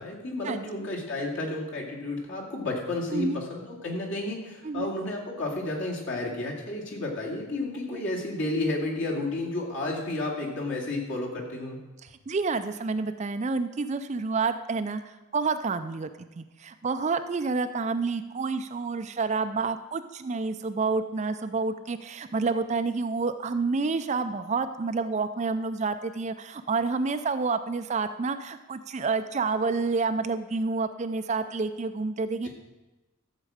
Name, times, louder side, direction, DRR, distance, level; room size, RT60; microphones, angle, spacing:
voice 1, 0.0-11.8, left 2 dB, 60° left, -2 dB, 2.3 m, -32 dB
voice 2, 12.0-15.0 15.3-16.1 16.4-32.5, right 4 dB, 30° right, 10 dB, 0.4 m, -29 dB
13.0 x 7.4 x 5.0 m, 1.1 s
head